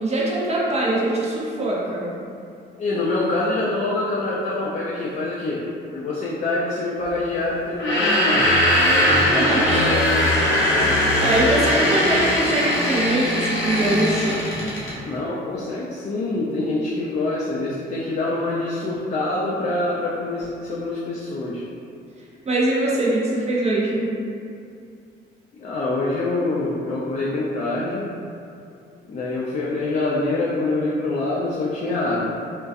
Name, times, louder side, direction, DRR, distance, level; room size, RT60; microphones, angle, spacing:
voice 1, 0.0-2.1 9.2-10.0 11.2-14.4 22.5-24.1, right 2 dB, 35° right, -5 dB, 0.6 m, -22 dB
voice 2, 2.8-5.6 5.9-8.6 8.8-9.2 9.7-10.3 15.1-21.6 25.5-28.1 29.1-32.3, left 2 dB, 35° left, -6 dB, 0.4 m, -25 dB
sound 1, 7.7-15.0, left 1 dB, 75° left, 0.6 m, -20 dB
2.3 x 2.2 x 2.5 m, 2.5 s
cardioid pair, 90°, 20 cm